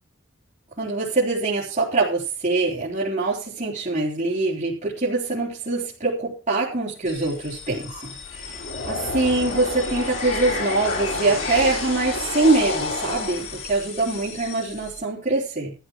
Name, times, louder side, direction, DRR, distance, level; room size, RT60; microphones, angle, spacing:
voice 1, 0.8-15.7, right 3 dB, 35° right, -7 dB, 3.8 m, -24 dB
sound 1, 7.1-15.0, left 3 dB, 75° left, 5.2 m, -30 dB
14.0 x 9.6 x 4.8 m, 0.34 s
head